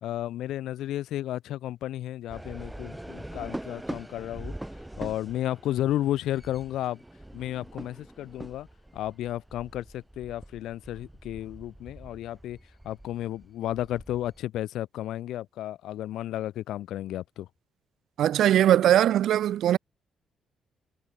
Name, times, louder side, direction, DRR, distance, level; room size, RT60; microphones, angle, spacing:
voice 1, 0.0-4.6 5.0-7.0 7.3-8.7 8.9-12.6 12.8-17.5, left 13 dB, 80° left, 2.4 m, -33 dB
sound 1, 2.3-14.4, right 1 dB, 5° right, 2.5 m, -43 dB
voice 2, 18.2-19.8, right 11 dB, 75° right, 0.7 m, -20 dB
cardioid pair, 90°, 0 cm